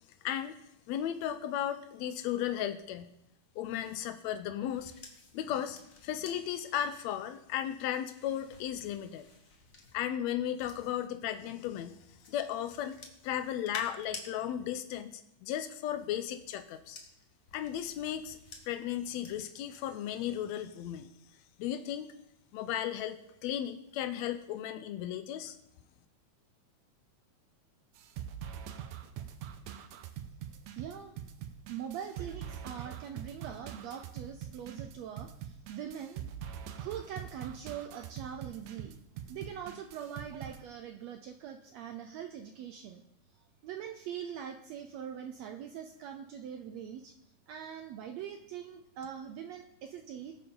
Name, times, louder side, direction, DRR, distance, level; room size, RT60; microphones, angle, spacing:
voice 1, 0.2-0.6 0.9-3.1 3.6-4.9 5.3-9.2 9.9-12.0 12.3-13.0 13.2-17.0 17.5-18.4 18.7-21.1 21.6-22.1 22.5-25.6, left 10 dB, 85° left, 9 dB, 1.5 m, -35 dB
sound 1, 3.7-11.3 11.8-14.3 15.5-19.8 20.2-20.5, left 3 dB, 50° left, 1.0 m, -52 dB
sound 2, 27.9-40.6, right 9 dB, 70° right, 1.9 m, -44 dB
voice 2, 30.7-31.2 31.7-36.2 36.8-39.0 39.3-43.0 43.6-47.1 47.5-50.4, right 9 dB, 85° right, 6 dB, 1.5 m, -42 dB
20.0 x 6.9 x 3.8 m, 0.82 s
omnidirectional pair, 3.8 m